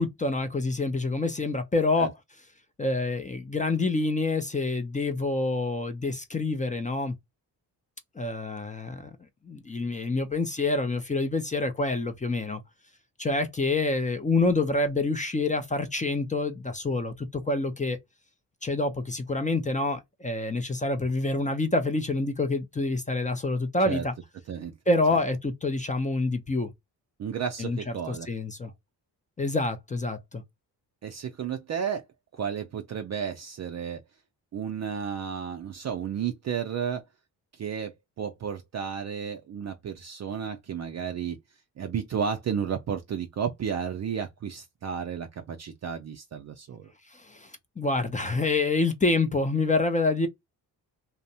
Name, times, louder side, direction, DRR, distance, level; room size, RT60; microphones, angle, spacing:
voice 1, 0.0-2.1 2.8-7.1 8.2-9.1 9.4-12.6 13.2-18.0 18.6-24.1 24.9-26.7 27.6-27.8 28.1-28.7 29.4-30.4 47.1-47.5 47.8-50.3, left 2 dB, 20° left, 0.4 m, -27 dB
voice 2, 27.2-28.3 31.0-32.0 32.3-34.0 34.5-37.0 37.5-41.4 41.8-46.9, right 7 dB, 45° right, 0.4 m, -32 dB
2.6 x 2.0 x 2.7 m
cardioid pair, 65°, 41 cm